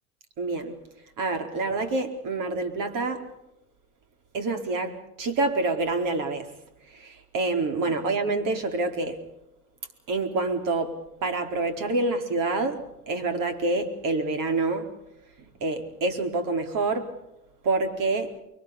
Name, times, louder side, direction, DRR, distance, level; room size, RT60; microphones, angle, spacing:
voice 1, 0.4-0.8 1.2-3.3 4.3-6.5 6.9-9.2 10.1-14.9 15.6-17.1 17.6-18.3, right 3 dB, 45° right, 4.5 m, -27 dB
29.5 x 23.5 x 5.2 m
hypercardioid pair, 90°, 44 cm